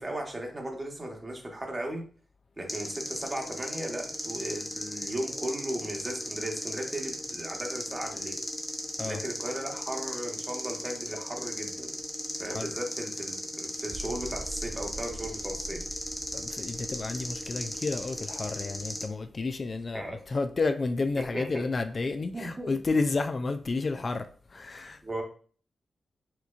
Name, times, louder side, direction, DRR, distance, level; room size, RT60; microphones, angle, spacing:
voice 1, 0.0-2.0 2.6-8.4 9.1-11.9 12.4-15.8 19.9-20.2 21.2-21.7 22.3-22.8 25.0-25.2, right 1 dB, 30° right, 1.0 m, -36 dB
sound 1, 2.7-19.0, left 1 dB, 20° left, 0.8 m, -37 dB
sound 2, 13.8-20.2, right 2 dB, 60° right, 0.4 m, -45 dB
voice 2, 16.3-24.3 24.5-25.0, left 3 dB, 50° left, 0.3 m, -31 dB
4.4 x 2.6 x 2.4 m
cardioid pair, 65°, 0 cm